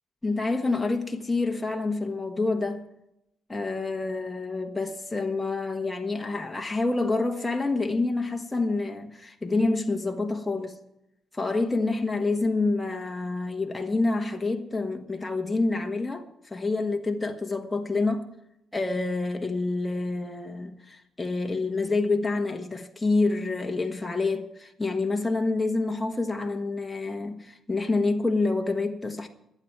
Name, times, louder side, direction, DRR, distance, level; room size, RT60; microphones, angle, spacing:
voice 1, 0.2-2.8 3.5-10.8 11.3-18.3 18.7-29.3, left 3 dB, 15° left, 1.4 m, -27 dB
24.5 x 8.9 x 4.7 m
cardioid pair, 90°, 0 cm